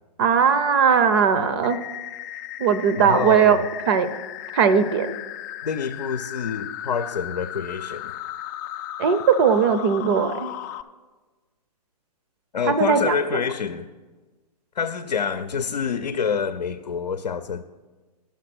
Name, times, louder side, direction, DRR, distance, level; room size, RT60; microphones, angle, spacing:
voice 1, 0.2-1.8 2.6-3.6 3.9-4.2 4.5-5.1 9.0-10.5 12.7-13.1, right 6 dB, 40° right, 11 dB, 0.6 m, -19 dB
sound 1, 1.6-10.8, left 12 dB, 30° left, 0.3 m, -36 dB
voice 2, 3.0-3.7 5.6-8.2 12.5-13.9 14.7-17.6, left 6 dB, 85° left, 9 dB, 0.6 m, -27 dB
9.8 x 7.3 x 6.0 m, 1.3 s
hypercardioid pair, 135°, 21 cm